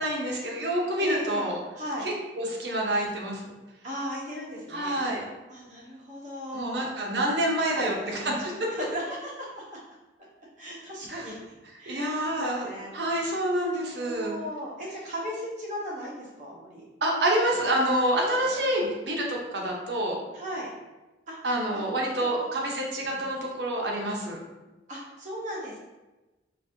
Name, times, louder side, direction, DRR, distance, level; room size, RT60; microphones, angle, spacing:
voice 1, 0.0-1.6 2.0-3.4 4.7-5.2 6.5-8.7 11.1-11.2 11.9-12.7 12.9-14.4 17.0-20.2 21.4-24.4, right 1 dB, 70° right, -1 dB, 0.8 m, -27 dB
voice 2, 1.0-2.1 3.8-5.1 5.5-6.9 7.7-9.8 10.6-11.4 11.8-12.9 13.7-16.8 18.1-18.5 20.3-20.7 21.3-21.4 21.7-22.5 24.9-25.8, equal, 45° right, -5 dB, 1.1 m, -37 dB
4.0 x 2.6 x 2.7 m, 1.1 s
head